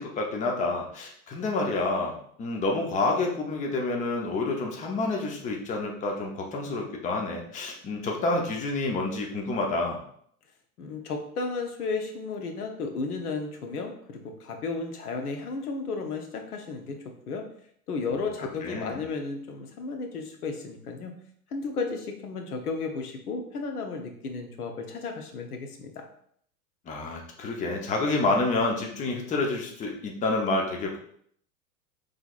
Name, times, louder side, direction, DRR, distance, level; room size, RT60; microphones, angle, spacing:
voice 1, 0.0-2.1 2.4-10.0 18.6-19.0 26.9-31.0, left 2 dB, 15° left, 1 dB, 0.7 m, -28 dB
voice 2, 10.8-17.0 17.3-17.4 17.9-21.1 21.5-26.0, left 4 dB, 75° left, 4 dB, 0.9 m, -33 dB
5.7 x 3.3 x 2.4 m, 0.65 s
hypercardioid pair, 105°, 46 cm